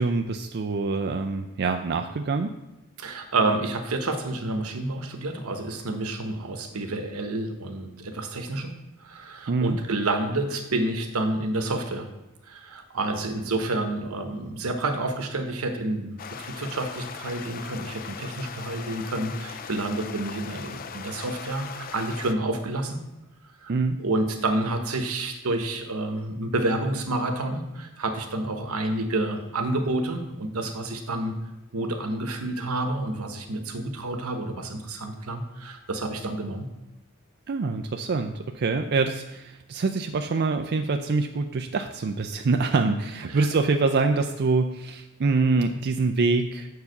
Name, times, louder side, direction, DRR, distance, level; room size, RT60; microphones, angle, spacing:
voice 1, 0.0-2.6 9.5-9.8 23.7-24.0 37.5-46.7, right 3 dB, 50° right, 5 dB, 0.4 m, -25 dB
voice 2, 3.0-8.7 9.0-12.1 12.4-23.0 23.6-23.7 24.0-31.4 31.7-36.7 43.3-43.5, right 2 dB, 80° right, 6 dB, 1.0 m, -29 dB
sound 1, 16.2-22.3, left 7 dB, 40° left, 0.4 m, -39 dB
7.0 x 4.8 x 6.6 m, 0.98 s
head